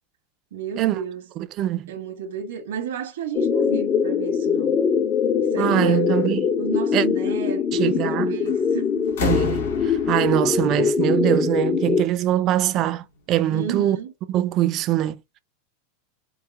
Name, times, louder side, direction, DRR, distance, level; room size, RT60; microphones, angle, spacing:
voice 1, 0.5-1.2 1.9-4.8 5.5-6.2 6.6-9.2 13.5-14.1, right 7 dB, 90° right, 1.3 m, -32 dB
voice 2, 1.4-1.9 5.6-6.5 6.9-7.1 7.7-8.3 9.2-14.0 14.3-15.4, right 13 dB, 40° right, 0.4 m, -23 dB
sound 1, 3.3-12.0, left 6 dB, 30° left, 0.5 m, -22 dB
sound 2, 8.4-8.7 9.1-11.8 12.9-13.0, left 7 dB, 85° left, 1.9 m, -32 dB
4.7 x 2.1 x 3.5 m
supercardioid pair, 140°, 0 cm